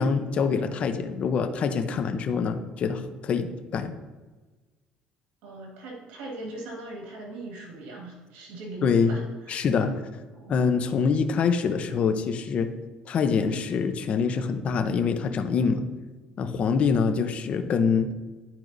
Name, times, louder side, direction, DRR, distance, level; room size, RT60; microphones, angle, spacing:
voice 1, 0.0-3.9 8.8-9.1 9.5-10.0 10.5-12.7 13.1-15.9 16.4-18.1, left 5 dB, 50° left, 7 dB, 0.8 m, -25 dB
voice 2, 5.4-9.6 10.3-10.6, right 2 dB, 85° right, -1 dB, 1.6 m, -40 dB
12.0 x 4.5 x 2.7 m, 1.3 s
supercardioid pair, 100°, 3 cm